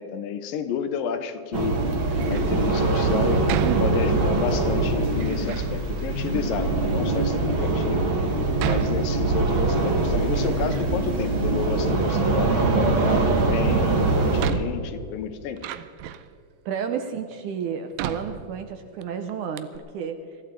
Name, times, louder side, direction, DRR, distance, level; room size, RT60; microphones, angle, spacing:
voice 1, 0.0-1.8 2.3-3.5 3.8-8.1 8.6-15.7, left 7 dB, 75° left, 9 dB, 2.4 m, -30 dB
sound 1, 1.5-14.5, right 3 dB, 55° right, 1.5 m, -23 dB
Door, 2.1-2.6 3.5-4.5 5.1-5.8 6.5-6.6 7.3-7.4 8.6-9.7 10.1-11.1 11.4-12.3 13.6-13.7 14.4-16.4 17.0-17.1 18.0-19.0 19.3-19.4 19.6-19.8, right 11 dB, 90° right, 2.4 m, -34 dB
voice 2, 16.7-20.2, right 7 dB, 75° right, 7 dB, 1.9 m, -31 dB
23.0 x 15.5 x 3.7 m, 2.4 s
omnidirectional pair, 4.1 m